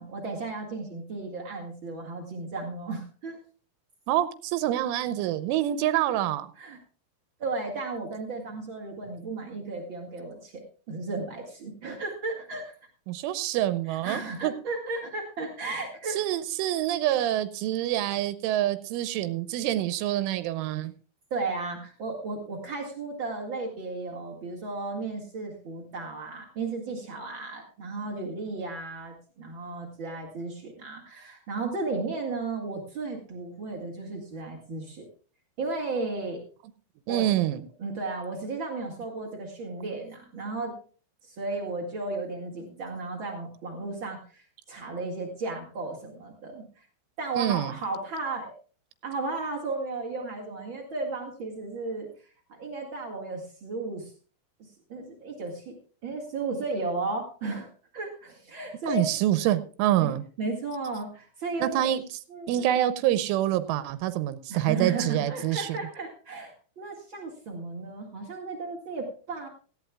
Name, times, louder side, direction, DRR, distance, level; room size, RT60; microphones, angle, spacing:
voice 1, 0.0-3.4 6.6-6.8 7.4-12.7 13.9-16.2 21.3-35.1 35.6-36.4 37.1-37.3 37.8-40.7 41.2-46.8 47.2-48.5 49.0-52.1 52.5-54.1 54.6-55.7 56.0-57.7 57.9-59.1 60.0-61.9 62.3-62.7 64.5-69.5, right 3 dB, 70° right, 1 dB, 1.1 m, -34 dB
voice 2, 4.1-6.5 13.1-14.5 16.2-20.9 37.1-37.6 47.4-47.7 58.9-60.2 61.6-62.0 62.5-65.8, right 13 dB, 85° right, 12 dB, 3.2 m, -26 dB
18.0 x 14.5 x 2.3 m, 0.40 s
omnidirectional pair, 5.6 m